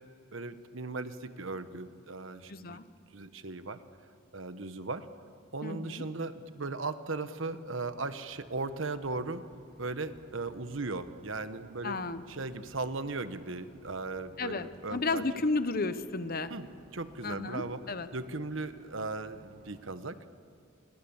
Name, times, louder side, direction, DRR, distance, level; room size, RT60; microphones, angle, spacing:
voice 1, 0.3-2.8 3.1-3.8 4.3-5.1 5.5-9.4 9.8-12.0 12.3-15.2 16.5-16.7 16.9-17.8 18.1-20.2, right 3 dB, 75° right, 11 dB, 1.2 m, -37 dB
voice 2, 2.5-2.8 5.6-6.1 11.8-12.2 14.4-16.5 17.2-18.1, left 3 dB, 45° left, 12 dB, 1.0 m, -33 dB
sound 1, 7.4-19.9, equal, 40° right, 3.0 m, -58 dB
27.5 x 22.5 x 7.2 m, 2.2 s
head